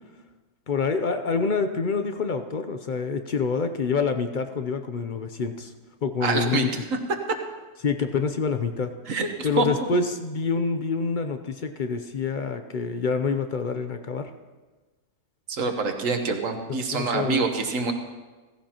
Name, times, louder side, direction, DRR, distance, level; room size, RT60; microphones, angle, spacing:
voice 1, 0.7-5.7 6.0-6.7 7.8-8.9 9.4-14.3 16.9-17.4, left 5 dB, 55° left, 7 dB, 0.5 m, -26 dB
voice 2, 6.2-7.0 7.3-7.4 9.0-9.9 15.5-17.9, right 4 dB, 60° right, 5 dB, 1.5 m, -26 dB
16.5 x 15.5 x 2.9 m, 1.3 s
omnidirectional pair, 1.6 m